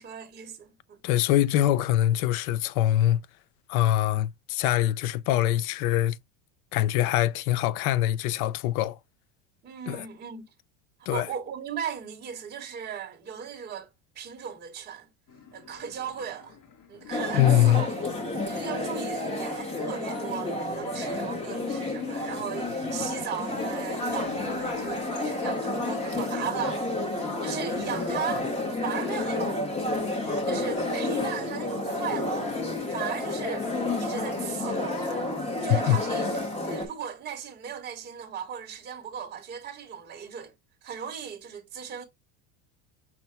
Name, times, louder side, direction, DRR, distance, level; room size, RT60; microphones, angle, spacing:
voice 1, 0.0-1.0 9.6-10.4 11.1-13.9 14.1-15.1 15.5-16.6 16.9-18.0 18.5-28.5 28.8-29.6 30.5-32.6 32.9-33.7 34.0-36.3 36.6-40.5 40.8-42.0, right 8 dB, 20° right, 0.9 m, -37 dB
voice 2, 1.0-3.2 3.7-6.2 6.7-9.0 9.9-10.1 11.1-11.3 17.3-17.9 35.9-36.0, left 13 dB, 85° left, 0.6 m, -23 dB
sound 1, 15.3-28.5, left 7 dB, 45° left, 1.2 m, -47 dB
sound 2, 17.1-36.9, left 2 dB, 15° left, 0.9 m, -30 dB
5.8 x 2.0 x 4.3 m
cardioid pair, 170°, 42 cm